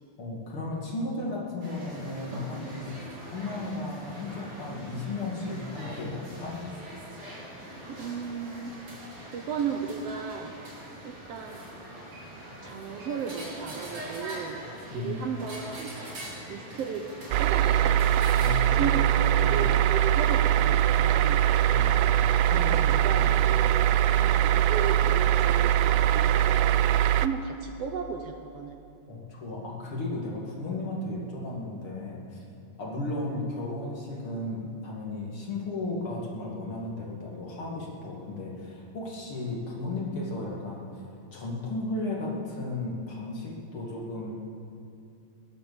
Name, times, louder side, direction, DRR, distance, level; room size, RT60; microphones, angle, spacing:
voice 1, 0.2-6.6 14.9-15.2 18.3-19.7 21.7-22.0 22.5-23.6 29.1-32.4 32.8-41.0 41.3-44.3, left 2 dB, 45° left, -3 dB, 3.0 m, -35 dB
sound 1, 1.6-18.6, right 1 dB, 45° right, 4.0 m, -43 dB
voice 2, 7.9-8.7 9.3-10.5 11.0-11.6 12.4-14.6 14.9-15.9 16.5-17.1 17.4-18.0 18.7-21.4 22.9-23.7 24.2-26.8 27.2-28.8 33.3-33.4, right 6 dB, 70° right, 4 dB, 1.6 m, -35 dB
sound 2, 17.3-27.3, right 11 dB, 90° right, 1.4 m, -22 dB
16.5 x 11.5 x 7.0 m, 2.5 s
omnidirectional pair, 3.4 m